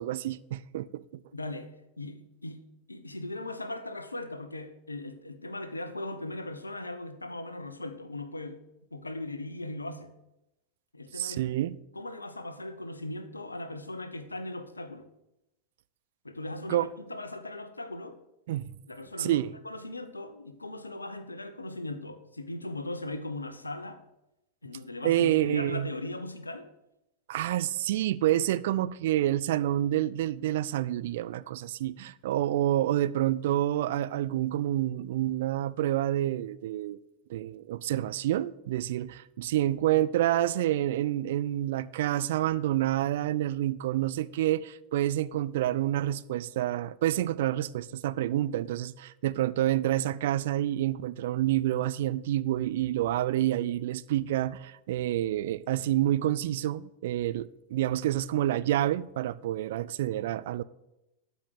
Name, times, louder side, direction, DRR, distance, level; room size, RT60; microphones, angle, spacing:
voice 1, 0.0-1.2 11.1-11.8 16.7-16.9 18.5-18.7 19.2-19.5 25.0-25.9 27.3-37.0 37.3-60.6, right 13 dB, 55° right, 0.5 m, -28 dB
voice 2, 1.3-2.6 2.9-8.6 8.9-10.1 10.9-11.4 11.9-15.1 16.2-18.2 18.9-24.0 24.6-26.7, left 2 dB, 80° left, 1.0 m, -38 dB
12.5 x 5.3 x 8.0 m
figure-of-eight pair, 90°, 0 cm